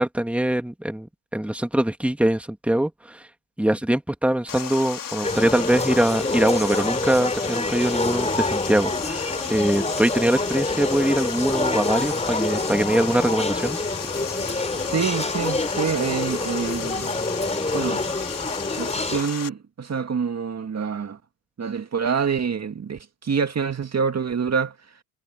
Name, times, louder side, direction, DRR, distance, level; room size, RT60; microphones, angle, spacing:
voice 1, 0.0-3.3 3.6-13.8, right 1 dB, 5° right, 2.3 m, -23 dB
Water, 4.5-19.5, left 8 dB, 40° left, 3.6 m, -34 dB
sound 1, 5.2-19.2, left 2 dB, 15° left, 7.6 m, -27 dB
voice 2, 14.8-17.1 17.7-18.0 18.8-21.2 21.6-24.8, right 6 dB, 35° right, 2.1 m, -26 dB
supercardioid pair, 80°, 47 cm